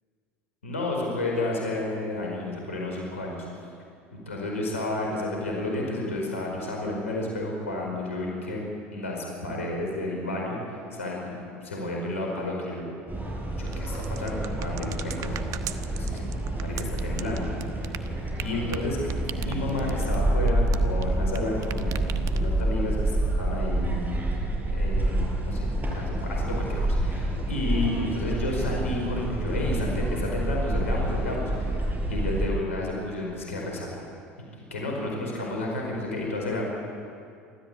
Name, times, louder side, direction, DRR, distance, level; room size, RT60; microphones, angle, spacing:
voice 1, 0.6-3.5 4.2-8.6 8.9-12.9 13.6-15.5 15.9-16.3 16.6-17.9 18.4-19.0 19.4-23.1 23.4-24.2 24.7-25.7 25.9-31.7 32.1-34.0 34.7-36.6, left 2 dB, 90° left, -1 dB, 4.9 m, -31 dB
sound 1, 13.1-32.5, right 1 dB, 25° right, 6.4 m, -28 dB
sound 2, 13.7-21.4 21.6-22.7, right 11 dB, 50° right, 1.2 m, -38 dB
28.5 x 13.5 x 8.6 m, 2.4 s
hypercardioid pair, 75°, 7 cm